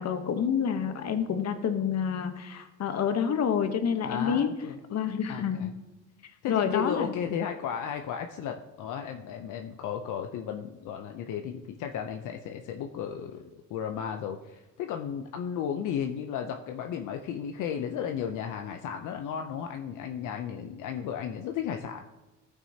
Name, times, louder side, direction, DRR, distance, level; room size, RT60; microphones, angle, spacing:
voice 1, 0.0-4.5 4.9-5.7 6.5-7.1, left 7 dB, 60° left, 8 dB, 1.0 m, -28 dB
voice 2, 4.0-4.8 5.3-5.7 6.4-13.4 13.7-22.0, left 8 dB, 80° left, 5 dB, 0.6 m, -34 dB
14.0 x 6.1 x 2.8 m, 1.1 s
cardioid pair, 90°, 30 cm